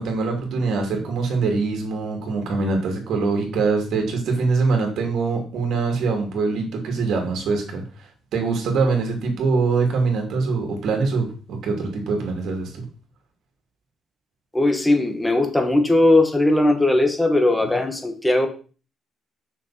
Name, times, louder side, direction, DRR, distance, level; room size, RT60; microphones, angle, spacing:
voice 1, 0.0-12.8, right 4 dB, 75° right, 2 dB, 2.8 m, -23 dB
voice 2, 14.5-18.5, left 2 dB, 10° left, 6 dB, 1.7 m, -18 dB
6.4 x 6.2 x 4.4 m, 0.37 s
cardioid pair, 90°, 0 cm